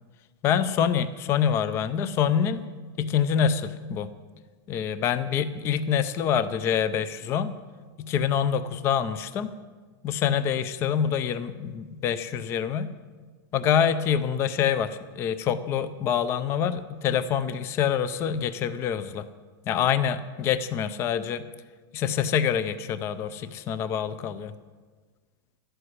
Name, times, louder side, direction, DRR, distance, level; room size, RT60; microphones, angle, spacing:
voice 1, 0.4-2.6 3.0-4.1 4.7-7.5 8.0-9.5 10.0-12.9 13.5-19.3 19.7-21.4 21.9-24.5, left 8 dB, 20° left, 14 dB, 0.4 m, -26 dB
12.5 x 7.9 x 9.6 m, 1.4 s
supercardioid pair, 165°, 13 cm